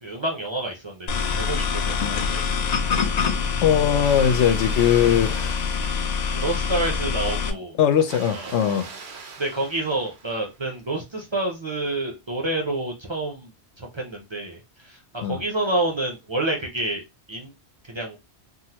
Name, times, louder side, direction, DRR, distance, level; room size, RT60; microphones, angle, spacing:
voice 1, 0.0-2.5 6.3-7.8 8.3-8.8 9.4-13.5 13.8-17.0 17.3-17.5 17.8-18.2, right 2 dB, 35° right, 0.5 m, -28 dB
sound 1, 1.1-7.5, left 5 dB, 55° left, 0.4 m, -25 dB
voice 2, 3.6-5.6 7.8-8.9 15.2-15.4, left 9 dB, 85° left, 0.9 m, -20 dB
Water, 3.9-6.7 7.9-10.7, right 4 dB, 70° right, 0.9 m, -42 dB
3.6 x 2.1 x 2.8 m
omnidirectional pair, 1.1 m